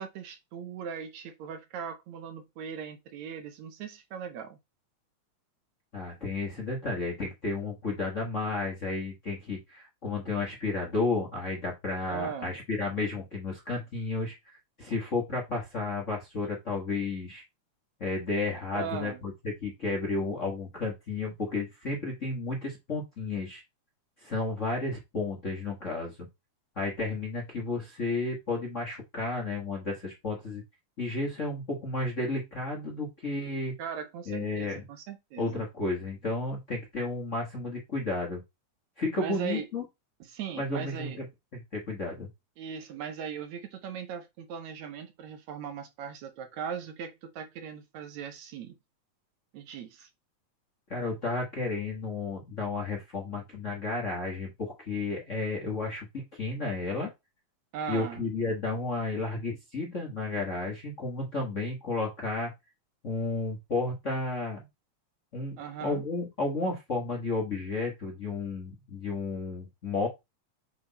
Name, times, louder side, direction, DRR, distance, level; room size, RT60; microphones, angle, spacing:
voice 1, 0.0-4.6 12.1-12.6 18.7-19.2 33.8-35.7 39.2-39.7 40.2-41.2 42.6-48.8 49.5-50.1 57.7-58.3 65.6-66.0, right 7 dB, 75° right, 2.1 m, -39 dB
voice 2, 5.9-14.3 14.8-17.4 18.0-19.1 19.4-23.6 24.2-26.1 26.8-30.6 31.0-33.7 34.3-34.8 35.4-38.4 39.0-39.8 40.6-41.2 41.5-42.3 50.9-56.1 56.3-57.1 57.9-62.5 63.0-64.6 65.3-70.1, left 3 dB, 35° left, 1.4 m, -32 dB
7.9 x 3.5 x 4.1 m
omnidirectional pair, 3.5 m